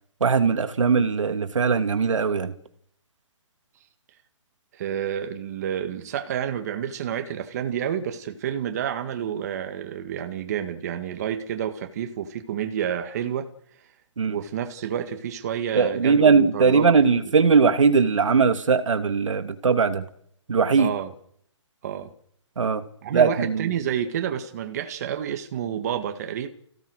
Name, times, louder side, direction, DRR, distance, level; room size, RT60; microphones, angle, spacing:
voice 1, 0.2-2.5 14.2-14.4 15.8-20.0 20.5-20.9 22.6-22.8 23.1-23.7, right 5 dB, 90° right, 2.5 m, -20 dB
voice 2, 4.7-13.5 14.3-16.9 17.2-17.3 20.8-21.1 21.8-22.1 23.0-26.5, right 9 dB, 35° right, 1.8 m, -29 dB
29.5 x 16.5 x 6.5 m
hypercardioid pair, 170°, 16 cm